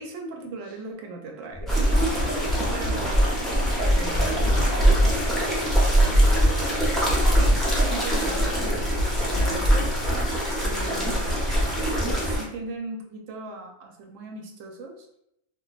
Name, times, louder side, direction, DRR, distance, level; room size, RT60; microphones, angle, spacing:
voice 1, 0.0-1.7 2.7-3.4 3.8-4.6 7.3-10.0 10.6-11.4 11.8-15.1, right 2 dB, 75° right, 2 dB, 1.0 m, -38 dB
sound 1, 1.5-12.4, equal, 40° right, 0.6 m, -23 dB
sound 2, 1.7-12.4, equal, ahead, 0.3 m, -28 dB
voice 2, 4.3-6.5, left 2 dB, 80° left, -2 dB, 0.3 m, -40 dB
2.5 x 2.2 x 3.8 m, 0.79 s
omnidirectional pair, 1.4 m